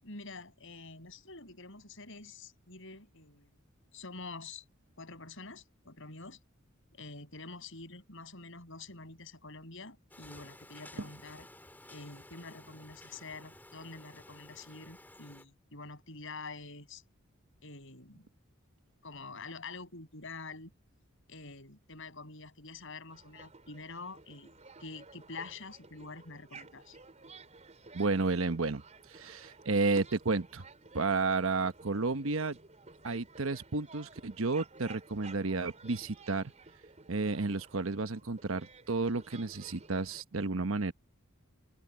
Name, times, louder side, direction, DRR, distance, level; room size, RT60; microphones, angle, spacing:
voice 1, 0.0-3.5 3.9-4.6 5.0-6.4 6.9-11.5 11.9-17.0 17.6-18.3 19.0-20.7 21.3-24.5 24.8-27.0, left 3 dB, 65° left, 7.6 m, -47 dB
sound 1, 10.1-15.5, left 1 dB, 10° left, 3.6 m, -54 dB
sound 2, 23.1-40.2, right 4 dB, 35° right, 4.2 m, -54 dB
voice 2, 27.9-28.8 29.1-30.7 30.9-32.6 33.0-36.5 37.1-40.9, right 3 dB, 70° right, 1.1 m, -32 dB
head